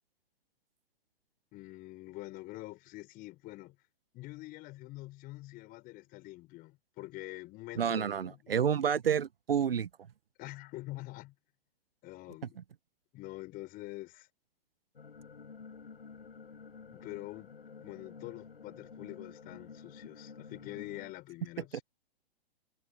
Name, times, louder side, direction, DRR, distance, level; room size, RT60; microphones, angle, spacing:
voice 1, 1.5-3.8 4.1-8.6 10.4-11.3 12.0-12.6 13.1-14.3 16.9-21.8, left 19 dB, 30° left, 5.4 m, -46 dB
voice 2, 7.7-9.9, right 8 dB, 75° right, 1.3 m, -29 dB
sound 1, 15.0-21.1, left 5 dB, 80° left, 6.7 m, -50 dB
figure-of-eight pair, 120°, 29 cm